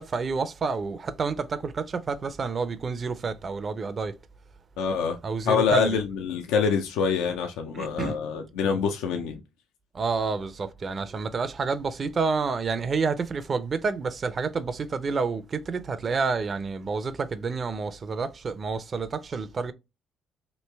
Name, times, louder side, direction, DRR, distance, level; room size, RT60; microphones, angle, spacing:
voice 1, 0.0-4.1 5.2-6.0 7.7-8.1 9.9-19.7, right 4 dB, 45° right, 0.4 m, -29 dB
voice 2, 4.8-5.2 5.4-9.4, left 6 dB, 85° left, 0.4 m, -25 dB
3.1 x 2.5 x 3.3 m
supercardioid pair, 70°, 0 cm